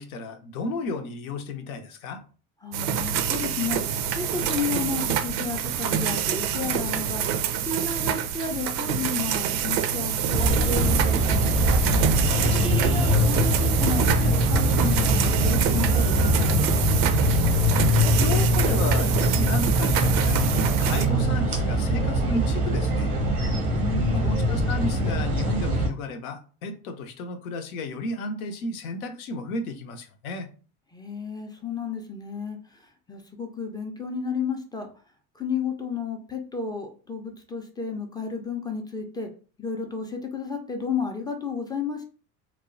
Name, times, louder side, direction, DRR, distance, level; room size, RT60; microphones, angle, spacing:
voice 1, 0.0-2.2 12.2-12.6 18.2-23.1 24.1-30.5, left 2 dB, 75° left, 6 dB, 0.6 m, -33 dB
voice 2, 2.6-11.6 12.4-16.6 23.6-24.3 30.9-34.9 35.3-39.3 39.6-42.0, left 5 dB, 10° left, 4 dB, 0.4 m, -32 dB
sound 1, 2.7-21.1, right 8 dB, 50° right, 0.4 m, -27 dB
sound 2, 10.3-25.9, equal, 90° right, 0.8 m, -22 dB
3.0 x 2.0 x 2.5 m, 0.38 s
hypercardioid pair, 75°, 43 cm